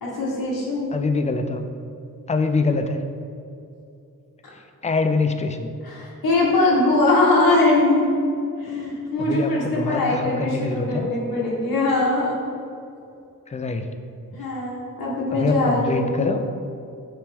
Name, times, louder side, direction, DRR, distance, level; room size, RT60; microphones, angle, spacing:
voice 1, 0.0-0.9 5.8-8.2 8.6-12.5 14.3-16.3, left 2 dB, 90° left, -6 dB, 1.3 m, -21 dB
voice 2, 0.9-1.7 2.3-3.0 4.8-5.7 9.2-11.1 13.5-13.9 15.3-16.4, left 3 dB, 20° left, 7 dB, 0.3 m, -24 dB
8.8 x 3.2 x 3.5 m, 2.6 s
wide cardioid pair, 120°, 35 cm